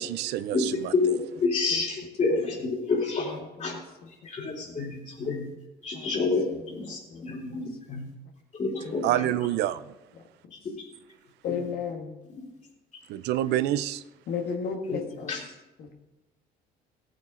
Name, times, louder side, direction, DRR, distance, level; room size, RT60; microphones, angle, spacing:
voice 1, 0.0-0.9 9.0-9.9 13.1-14.0, right 13 dB, 85° right, 15 dB, 0.6 m, -27 dB
voice 2, 0.5-3.8 4.1-5.5 5.8-8.1 8.5-9.4 10.5-10.9 11.5-11.6 12.3-12.4 14.9-15.0 15.3-15.4, left 3 dB, 45° left, -1 dB, 3.4 m, -29 dB
voice 3, 3.2-4.1 4.4-4.9 5.3-5.4 5.9-8.0 8.8-9.2 11.4-12.1 14.3-15.3 15.8-15.9, left 6 dB, 65° left, 3 dB, 1.6 m, -36 dB
15.5 x 8.9 x 3.8 m, 1.1 s
cardioid pair, 110°, 17 cm